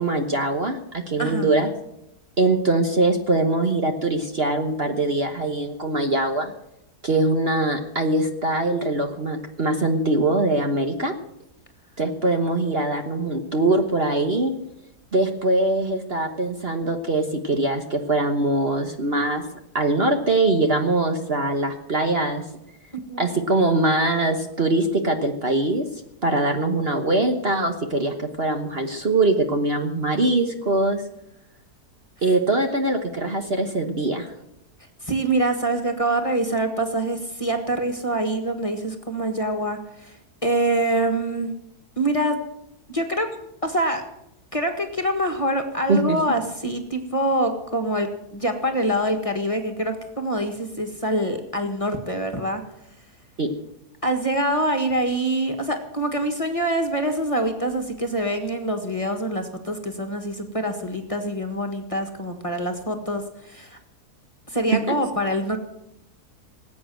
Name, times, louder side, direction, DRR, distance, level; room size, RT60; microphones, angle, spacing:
voice 1, 0.0-1.7 2.4-6.5 7.0-11.1 12.0-14.5 15.1-19.4 19.7-22.4 23.2-25.9 26.2-31.0 32.2-34.3 45.9-46.2 53.4-53.5 64.7-64.8, right 2 dB, 40° right, 5 dB, 1.4 m, -22 dB
voice 2, 1.2-1.5 23.1-23.4 35.0-41.5 42.0-42.4 42.9-43.3 43.6-44.0 44.5-52.6 54.0-63.8 64.5-65.6, right 1 dB, 20° left, 5 dB, 1.6 m, -25 dB
19.5 x 8.7 x 7.8 m, 0.83 s
omnidirectional pair, 1.7 m